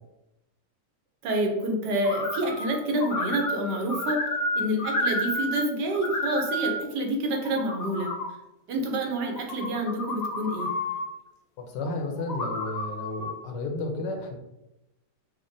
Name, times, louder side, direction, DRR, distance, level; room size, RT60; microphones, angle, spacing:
voice 1, 1.2-4.3 4.6-8.1 8.7-10.7, right 1 dB, 85° right, 2 dB, 1.4 m, -28 dB
sound 1, 2.0-2.7 3.0-5.6 5.9-6.8 7.3-8.3 9.2-11.1 12.2-13.3, left 1 dB, 50° left, 0.7 m, -31 dB
voice 2, 11.6-14.4, left 2 dB, 85° left, 4 dB, 1.3 m, -32 dB
6.0 x 2.1 x 2.6 m, 0.93 s
omnidirectional pair, 1.8 m